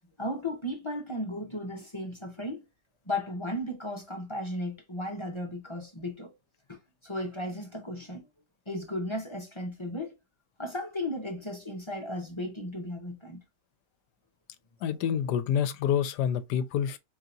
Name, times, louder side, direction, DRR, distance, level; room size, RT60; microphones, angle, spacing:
voice 1, 0.2-2.6 3.1-6.3 7.0-8.2 8.7-10.1 10.6-13.4, left 1 dB, 25° left, 0.8 m, -35 dB
voice 2, 14.8-17.0, left 9 dB, 80° left, 1.2 m, -27 dB
5.0 x 2.8 x 2.5 m
omnidirectional pair, 1.8 m